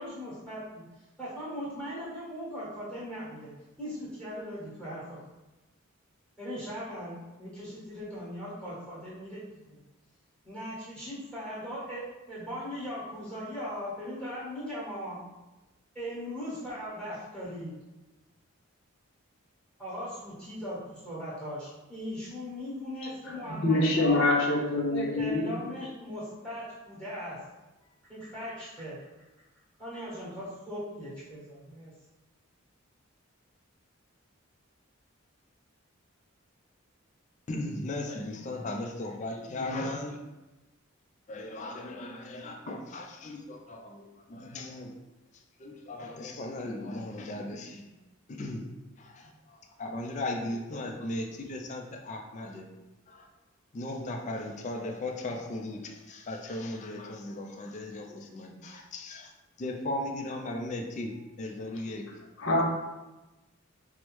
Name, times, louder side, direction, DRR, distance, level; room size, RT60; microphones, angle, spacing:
voice 1, 0.0-3.5 3.8-5.2 6.4-9.8 10.4-15.2 15.9-17.7 19.8-24.4 24.9-27.4 27.8-29.0 29.8-31.9, equal, 5° left, -9 dB, 1.3 m, -39 dB
voice 2, 23.3-25.5 62.4-62.6, left 2 dB, 55° left, -4 dB, 0.7 m, -25 dB
voice 3, 37.5-40.2 41.3-44.9 45.3-47.9 48.3-48.7 49.0-52.6 53.1-53.3 53.7-59.3 59.6-62.0, left 1 dB, 35° left, 3 dB, 0.3 m, -37 dB
4.7 x 2.0 x 3.0 m, 1.1 s
head